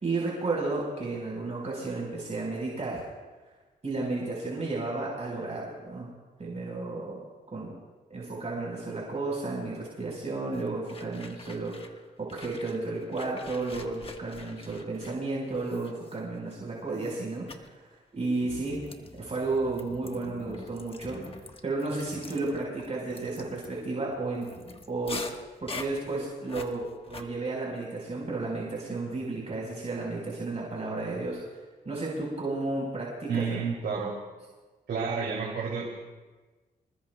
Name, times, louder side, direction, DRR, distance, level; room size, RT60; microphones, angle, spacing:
voice 1, 0.0-3.0 3.8-6.1 6.4-7.2 7.5-7.7 8.1-17.7 18.1-18.8 19.2-21.2 21.6-24.5 24.9-25.3 25.6-31.4 31.8-33.6, right 3 dB, 40° right, -4 dB, 4.5 m, -32 dB
sound 1, 10.5-12.0 12.3-16.5 16.9-17.2 17.5-17.7 18.3-27.2, left 3 dB, 30° left, 1.4 m, -45 dB
voice 2, 33.3-34.1 34.9-35.9, right 5 dB, 70° right, -3 dB, 2.9 m, -30 dB
26.5 x 20.5 x 2.3 m, 1.3 s
cardioid pair, 80°, 18 cm